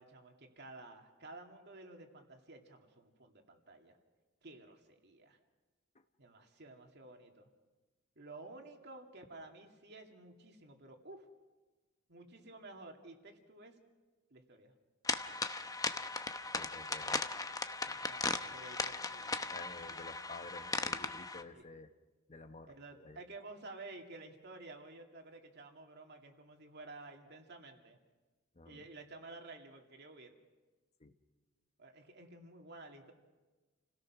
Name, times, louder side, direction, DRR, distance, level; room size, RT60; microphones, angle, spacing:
voice 1, 0.0-4.0 4.4-5.4 6.2-7.5 8.2-11.3 12.1-13.8 14.3-14.7 18.0-19.6 19.9-20.0 21.5-21.7 22.7-28.0 28.6-30.3 31.8-33.1, right 2 dB, 55° right, 3 dB, 2.4 m, -52 dB
sound 1, 15.0-21.4, left 3 dB, 20° left, 0.8 m, -38 dB
voice 2, 16.6-17.3 17.9-18.1 19.5-21.9 22.3-23.2 28.5-28.8 31.0-31.1, left 3 dB, 35° left, 8 dB, 1.0 m, -51 dB
29.0 x 17.0 x 6.1 m, 1.2 s
head